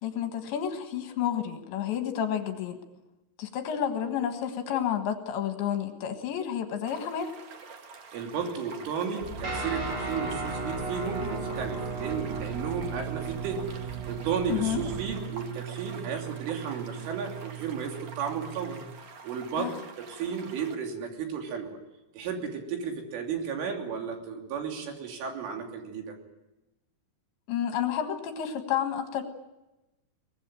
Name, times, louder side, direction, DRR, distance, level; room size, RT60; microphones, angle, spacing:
voice 1, 0.0-2.8 3.4-7.3 14.5-14.8 19.6-19.7 27.5-29.2, left 9 dB, 65° left, 6 dB, 3.6 m, -30 dB
sound 1, 6.8-20.8, right 5 dB, 50° right, 2.2 m, -48 dB
voice 2, 8.1-18.8 19.2-21.8 22.2-26.2, right 6 dB, 70° right, 3 dB, 5.4 m, -34 dB
sound 2, 9.2-15.2, right 1 dB, 85° right, 5.9 m, -41 dB
Guitar, 9.4-18.8, right 5 dB, 25° right, 4.4 m, -37 dB
23.0 x 19.5 x 9.0 m, 0.99 s
omnidirectional pair, 6.0 m